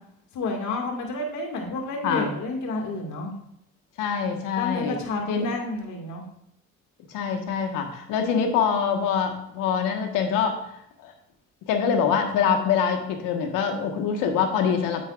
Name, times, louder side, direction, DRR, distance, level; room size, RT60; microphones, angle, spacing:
voice 1, 0.3-3.3 4.6-6.2, left 2 dB, 65° left, 2 dB, 2.1 m, -30 dB
voice 2, 2.0-2.3 4.0-5.0 5.3-5.5 7.1-10.6 11.0-11.1 11.7-15.0, left 7 dB, 80° left, 4 dB, 1.4 m, -24 dB
9.0 x 8.5 x 2.5 m, 0.76 s
supercardioid pair, 80°, 32 cm